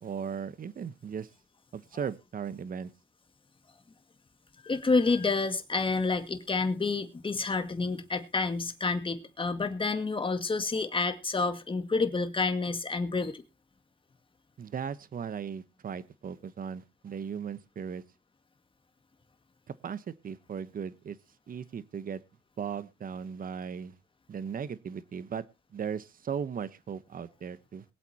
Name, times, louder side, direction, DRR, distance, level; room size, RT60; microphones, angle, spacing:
voice 1, 0.0-1.3 1.7-2.9 14.6-18.0 19.7-21.2 21.5-22.2 22.6-24.0 24.3-25.4 25.7-27.8, right 7 dB, 45° right, 15 dB, 1.1 m, -37 dB
voice 2, 4.6-13.4, left 3 dB, 25° left, 8 dB, 2.0 m, -29 dB
22.0 x 8.1 x 2.9 m, 0.29 s
cardioid pair, 90°, 20 cm